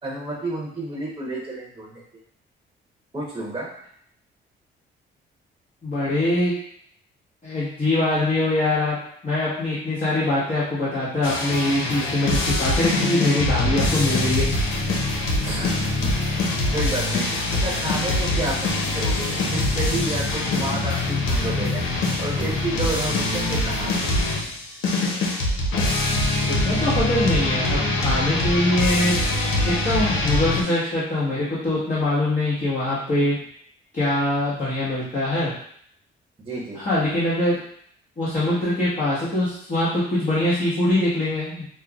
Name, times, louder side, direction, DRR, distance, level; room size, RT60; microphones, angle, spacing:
voice 1, 0.0-2.0 3.1-3.7 15.4-16.1 16.7-17.3 17.5-21.8 22.2-23.9 36.4-36.8, right 2 dB, 20° right, -5 dB, 0.9 m, -30 dB
voice 2, 5.8-6.5 7.4-9.0 9.2-14.5 26.4-29.1 29.6-33.4 33.9-35.5 36.7-37.6 38.2-41.6, left 1 dB, 40° left, -10 dB, 1.3 m, -23 dB
sound 1, 11.2-30.6, left 2 dB, 85° left, 0.7 m, -23 dB
5.4 x 2.0 x 2.4 m, 0.65 s
cardioid pair, 90°, 20 cm